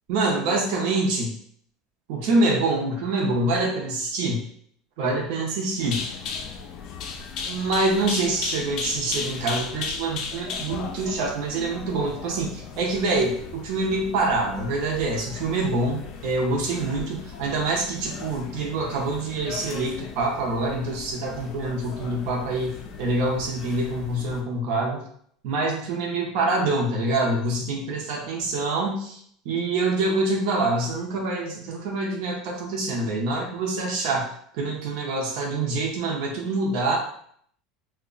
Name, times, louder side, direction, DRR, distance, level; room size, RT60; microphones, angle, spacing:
voice 1, 0.1-1.3 2.1-4.4 5.0-6.1 7.4-25.0 25.4-29.2 29.4-37.0, right 2 dB, 55° right, -1 dB, 0.7 m, -26 dB
sound 1, 5.8-24.4, left 5 dB, 40° left, 0.3 m, -37 dB
2.8 x 2.2 x 3.8 m, 0.62 s
cardioid pair, 175°, 0 cm